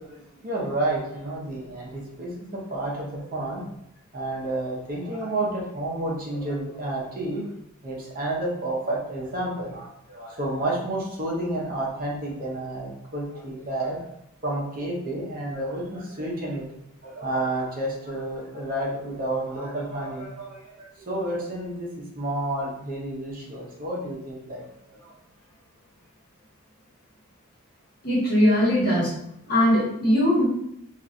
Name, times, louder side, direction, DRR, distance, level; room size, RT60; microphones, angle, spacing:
voice 1, 0.0-3.6 4.1-7.5 7.8-14.1 14.4-25.2, right 1 dB, 40° right, -3 dB, 0.6 m, -30 dB
voice 2, 28.0-29.2 29.5-30.4, equal, 45° left, -7 dB, 1.2 m, -20 dB
3.0 x 2.4 x 2.5 m, 0.78 s
head